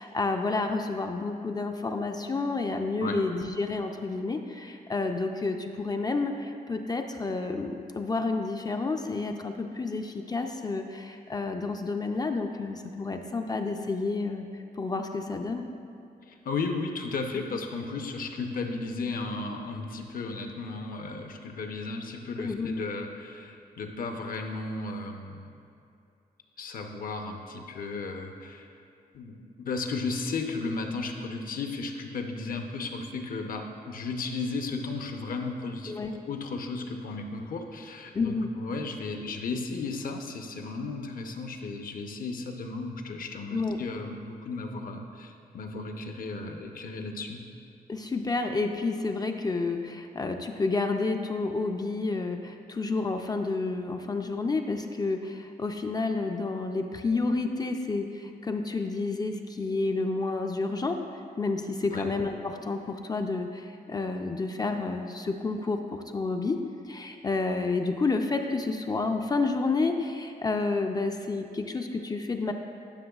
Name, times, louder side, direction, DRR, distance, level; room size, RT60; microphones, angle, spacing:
voice 1, 0.0-14.4 14.8-15.7 22.4-22.7 35.9-36.1 38.1-38.5 43.5-43.8 47.9-61.0 61.4-66.6 66.9-72.5, left 3 dB, 25° left, 4 dB, 0.4 m, -30 dB
voice 2, 16.2-25.4 26.6-28.7 29.1-36.0 36.3-47.4 61.9-62.1, left 3 dB, 65° left, 4 dB, 0.7 m, -34 dB
11.5 x 5.9 x 2.3 m, 2.6 s
wide cardioid pair, 115°, 16 cm